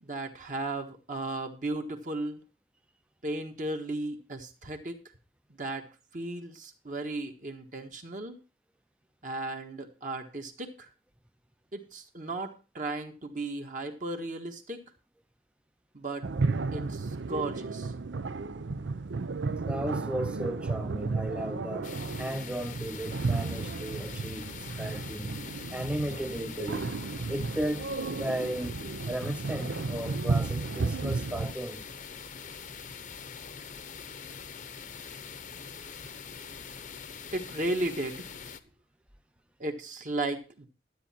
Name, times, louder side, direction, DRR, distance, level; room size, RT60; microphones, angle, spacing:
voice 1, 0.0-2.4 3.2-5.0 5.6-5.9 6.1-8.4 9.2-10.9 11.7-14.8 15.9-16.3 16.7-17.9 37.3-38.3 39.6-40.7, right 2 dB, 45° right, 1.4 m, -35 dB
sound 1, 16.2-31.5, right 3 dB, 85° right, 0.6 m, -33 dB
voice 2, 19.7-25.4 25.7-26.9 27.3-27.9 28.2-28.8 29.1-31.8, right 1 dB, 5° right, 0.5 m, -35 dB
sound 2, 21.8-38.6, left 6 dB, 45° left, 0.8 m, -43 dB
12.5 x 8.4 x 4.3 m
head